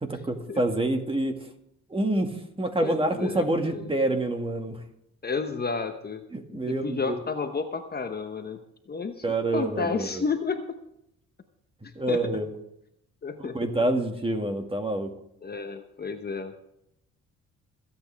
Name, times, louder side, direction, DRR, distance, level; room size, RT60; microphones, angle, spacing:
voice 1, 0.0-1.5 1.9-2.3 2.6-4.8 6.3-7.2 9.2-10.2 12.0-12.5 13.4-15.1, right 1 dB, 20° right, 5 dB, 2.0 m, -27 dB
voice 2, 2.8-3.9 5.2-6.2 6.5-8.6 8.9-9.2 9.5-10.8 11.8-12.4 13.2-13.7 15.4-16.5, left 4 dB, 30° left, 7 dB, 1.0 m, -32 dB
26.0 x 8.8 x 3.5 m, 0.78 s
cardioid pair, 90°, 30 cm